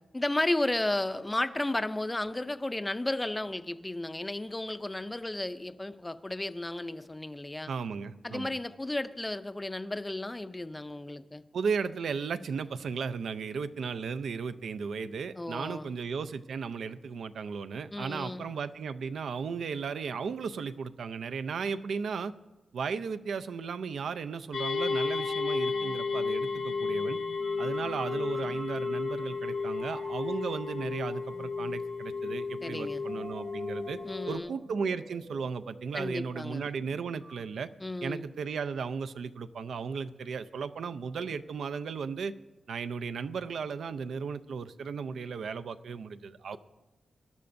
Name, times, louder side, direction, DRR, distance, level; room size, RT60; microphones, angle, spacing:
voice 1, 0.1-7.7 8.2-11.4 15.4-15.9 17.9-18.5 32.6-33.0 34.0-34.6 35.9-36.7 37.8-38.2, left 2 dB, 15° left, 11 dB, 0.4 m, -33 dB
voice 2, 7.7-8.5 11.5-22.3 22.7-27.2 27.6-34.0 34.3-37.7 38.0-42.3 42.7-46.6, right 5 dB, 85° right, 12 dB, 0.5 m, -35 dB
sound 1, 24.5-34.4, left 4 dB, 85° left, 1.1 m, -33 dB
sound 2, 24.7-37.4, right 2 dB, 30° right, 0.8 m, -50 dB
20.0 x 12.0 x 2.6 m, 1.1 s
wide cardioid pair, 145°, 0 cm